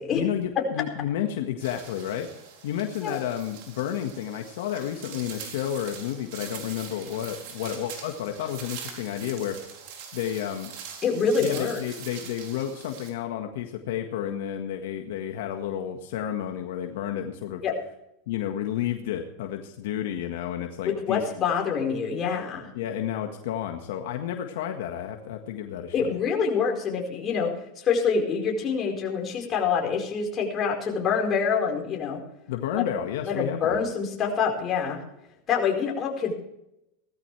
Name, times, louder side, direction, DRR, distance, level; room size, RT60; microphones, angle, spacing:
voice 1, 0.1-2.3 2.6-9.6 10.1-10.7 11.4-17.6 18.3-21.2 22.7-26.1 32.5-33.8, left 10 dB, 75° left, 4 dB, 1.6 m, -31 dB
sound 1, 1.6-13.1, right 7 dB, 60° right, 4.2 m, -43 dB
voice 2, 11.0-11.8 17.6-17.7 20.8-22.7 25.9-32.2 32.9-33.0 33.2-35.0 35.5-36.3, left 6 dB, 30° left, 0 dB, 4.6 m, -26 dB
18.0 x 14.0 x 3.4 m, 0.83 s
supercardioid pair, 130°, 0 cm